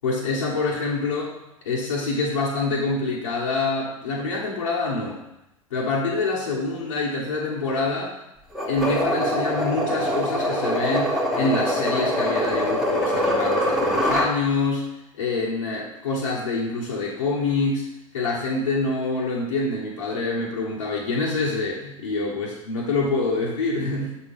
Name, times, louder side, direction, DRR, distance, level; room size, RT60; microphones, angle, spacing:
voice 1, 0.0-1.4 1.6-5.2 5.7-8.2 8.7-14.9 15.1-17.9 18.1-24.1, left 3 dB, 70° left, -5 dB, 1.1 m, -26 dB
sound 1, 8.5-14.3, equal, ahead, 1.3 m, -23 dB
6.9 x 4.5 x 3.6 m, 0.88 s
figure-of-eight pair, 85°, 18 cm